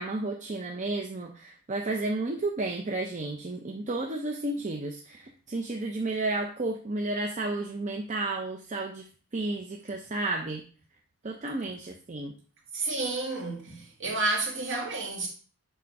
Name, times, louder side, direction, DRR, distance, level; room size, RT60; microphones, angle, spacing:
voice 1, 0.0-9.1 9.3-10.6 11.2-12.3, right 2 dB, 35° right, 0.6 m, -32 dB
voice 2, 12.7-15.3, right 2 dB, 60° right, 2.2 m, -30 dB
7.0 x 3.8 x 5.3 m
head